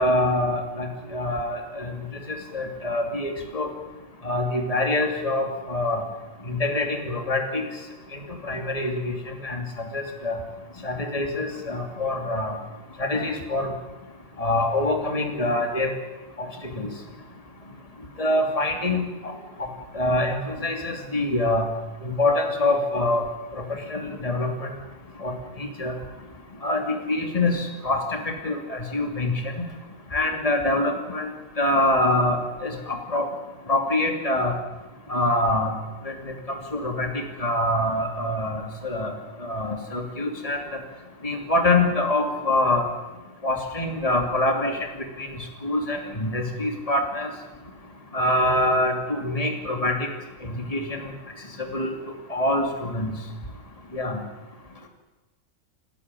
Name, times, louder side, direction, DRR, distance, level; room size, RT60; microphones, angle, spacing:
voice 1, 0.0-1.9 2.5-3.7 4.2-6.0 6.5-7.6 8.4-9.1 9.4-9.6 9.9-10.4 10.8-12.6 13.0-13.7 14.4-15.9 16.4-16.5 16.7-16.9 18.2-19.3 19.9-21.7 22.0-23.2 23.5-23.6 23.9-24.7 25.2-25.9 26.6-28.0 28.4-29.7 30.1-31.3 31.6-33.3 33.7-34.6 35.1-35.7 36.1-37.1 37.4-39.1 39.4-40.6 41.2-42.8 43.4-44.8 45.2-45.3 45.6-47.3 48.1-50.0 50.5-51.1 51.6-51.9 52.3-53.1 53.9-54.2, left 2 dB, 25° left, 3 dB, 2.8 m, -25 dB
28.5 x 13.5 x 9.9 m, 1.2 s
omnidirectional pair, 1.4 m